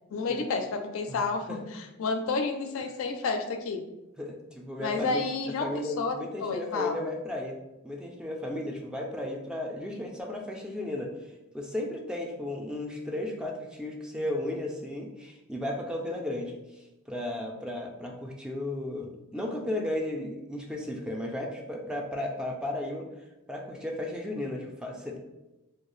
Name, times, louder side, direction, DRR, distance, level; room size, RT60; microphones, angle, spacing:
voice 1, 0.1-3.8 4.8-5.7 6.0-7.0, left 4 dB, 70° left, 5 dB, 0.4 m, -30 dB
voice 2, 1.1-1.6 4.2-5.3 5.6-11.1 11.5-23.1 23.5-25.2, left 1 dB, 5° right, 0 dB, 0.3 m, -34 dB
2.7 x 2.2 x 3.0 m, 0.98 s
head